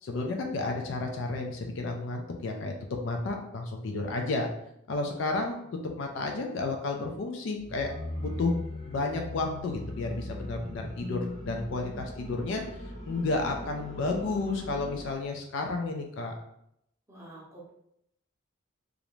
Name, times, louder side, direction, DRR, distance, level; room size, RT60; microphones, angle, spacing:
voice 1, 0.0-4.5 4.9-5.6 5.8-8.6 8.9-12.6 13.0-16.3, left 3 dB, 60° left, 3 dB, 0.3 m, -32 dB
sound 1, 7.6-15.3, left 1 dB, 40° left, 0.8 m, -39 dB
voice 2, 17.1-17.7, right 2 dB, 15° right, -5 dB, 0.7 m, -47 dB
2.4 x 2.0 x 3.0 m, 0.77 s
head